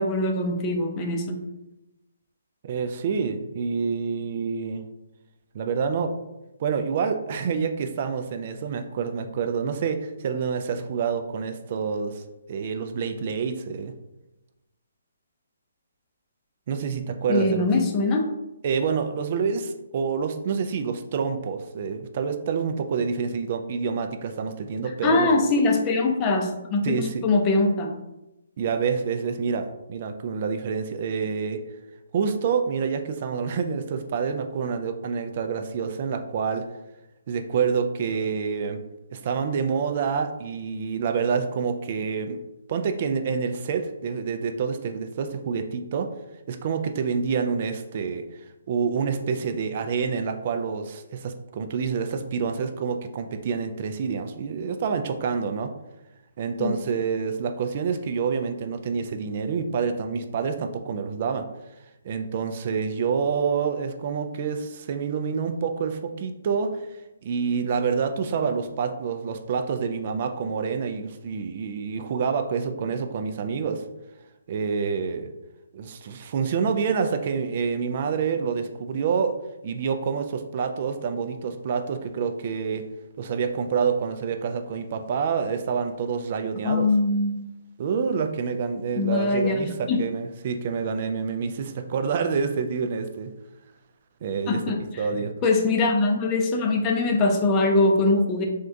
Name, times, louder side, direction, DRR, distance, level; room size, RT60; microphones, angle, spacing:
voice 1, 0.0-1.4 17.3-18.3 25.0-27.9 56.6-56.7 86.6-87.4 89.0-90.0 94.5-95.1 95.4-98.5, left 2 dB, 25° left, 2 dB, 0.5 m, -22 dB
voice 2, 2.6-4.9 5.5-6.1 6.6-12.2 12.5-13.9 16.7-17.7 18.6-25.3 26.8-27.3 28.6-31.6 32.1-36.7 37.3-38.8 39.1-42.4 42.7-46.1 46.5-48.2 48.7-55.7 56.4-61.5 62.0-66.9 67.2-73.8 74.5-75.3 75.7-79.4 79.6-82.9 83.2-86.9 87.8-93.3 94.2-94.6 95.0-95.3, right 6 dB, 45° right, 7 dB, 0.3 m, -27 dB
3.5 x 2.2 x 2.6 m, 0.95 s
figure-of-eight pair, 145°, 0 cm